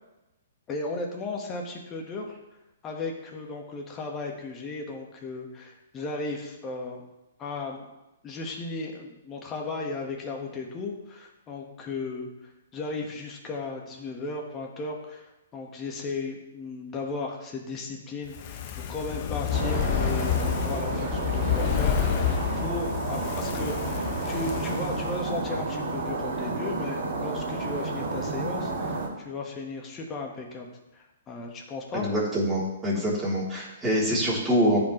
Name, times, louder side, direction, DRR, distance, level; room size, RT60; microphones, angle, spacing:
voice 1, 0.7-2.3 2.8-7.0 7.4-7.9 8.2-12.3 12.7-30.7 30.9-32.0, left 3 dB, 25° left, 1 dB, 1.8 m, -35 dB
Fire, 18.3-25.6 25.9-26.0, left 9 dB, 45° left, 0.8 m, -29 dB
sound 1, 19.5-29.1, right 3 dB, 60° right, 2.3 m, -31 dB
voice 2, 31.9-34.8, equal, 10° right, -7 dB, 3.5 m, -25 dB
14.0 x 5.2 x 3.4 m, 0.96 s
hypercardioid pair, 130°, 0 cm